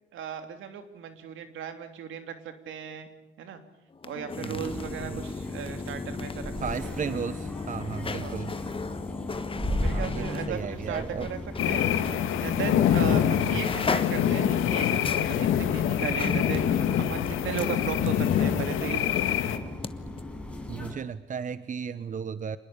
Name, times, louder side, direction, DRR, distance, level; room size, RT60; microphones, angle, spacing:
voice 1, 0.1-3.1 3.4-3.6 4.0-6.9 8.2-8.4 9.7-11.4 11.6-11.9 12.4-19.4, right 8 dB, 80° right, 8 dB, 3.1 m, -36 dB
sound 1, 3.9-11.7 12.0-12.2 13.0-13.1 13.4-19.9 20.2-20.3, left 4 dB, 25° left, 1.3 m, -36 dB
sound 2, 4.5-20.9, left 1 dB, 5° left, 6.4 m, -37 dB
voice 2, 6.6-8.5 9.9-11.3 13.4-13.7 20.7-22.6, right 6 dB, 40° right, 14 dB, 1.0 m, -35 dB
sound 3, 11.6-19.6, left 10 dB, 85° left, 2.1 m, -25 dB
27.0 x 20.5 x 8.7 m, 0.93 s
cardioid pair, 90°, 20 cm